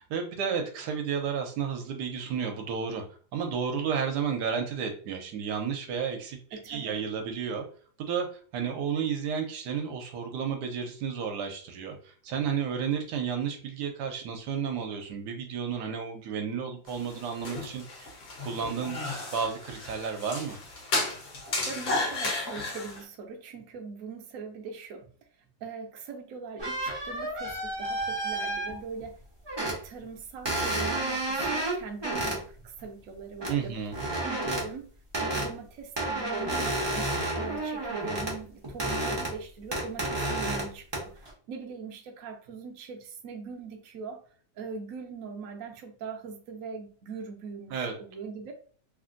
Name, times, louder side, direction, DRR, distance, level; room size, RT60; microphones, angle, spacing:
voice 1, 0.0-3.0 3.3-7.6 8.0-8.3 8.5-18.1 18.4-20.6 33.5-34.0 47.7-47.9, right 7 dB, 85° right, 4 dB, 1.2 m, -32 dB
voice 2, 6.5-7.0 21.6-25.1 25.6-29.2 29.6-33.8 34.2-34.9 35.2-48.5, right 5 dB, 65° right, 3 dB, 0.9 m, -41 dB
sound 1, 16.9-23.0, left 2 dB, 65° left, 1.3 m, -33 dB
sound 2, 26.6-29.0 29.5-29.9 30.5-32.4 33.4-33.5 33.9-34.7 35.1-35.5 36.0-38.4 38.6-39.4 39.7-40.7 40.9-41.3, right 2 dB, 35° right, 0.4 m, -30 dB
3.2 x 2.5 x 2.5 m, 0.43 s
omnidirectional pair, 1.8 m